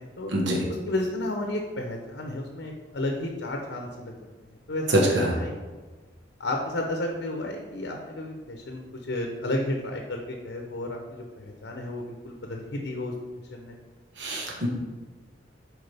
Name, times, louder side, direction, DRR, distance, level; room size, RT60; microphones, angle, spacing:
voice 1, 0.0-0.3 0.7-4.9 5.3-5.5 6.4-13.1 13.5-13.7, left 1 dB, 70° left, 2 dB, 0.8 m, -32 dB
voice 2, 4.9-5.4 14.2-14.7, right 1 dB, 75° right, -1 dB, 1.2 m, -24 dB
8.0 x 4.8 x 3.4 m, 1.3 s
head